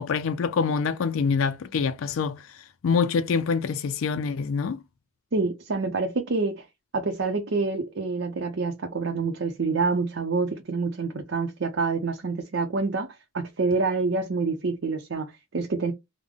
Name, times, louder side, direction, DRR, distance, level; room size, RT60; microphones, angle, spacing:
voice 1, 0.0-4.8, left 5 dB, 90° left, 0.4 m, -26 dB
voice 2, 5.3-6.6 6.9-13.1 13.3-15.9, right 4 dB, 65° right, 0.6 m, -27 dB
3.6 x 2.1 x 3.5 m
head